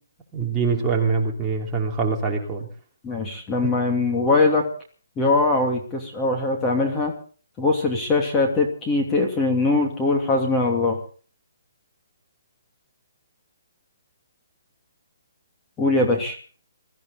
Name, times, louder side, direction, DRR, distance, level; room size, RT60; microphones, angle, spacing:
voice 1, 0.3-2.7, right 4 dB, 10° right, -3 dB, 3.2 m, -24 dB
voice 2, 3.0-4.7 5.2-7.1 7.6-11.0 15.8-16.4, left 3 dB, 15° left, 1 dB, 2.7 m, -21 dB
22.5 x 14.5 x 4.1 m, 0.41 s
hypercardioid pair, 170°, 0 cm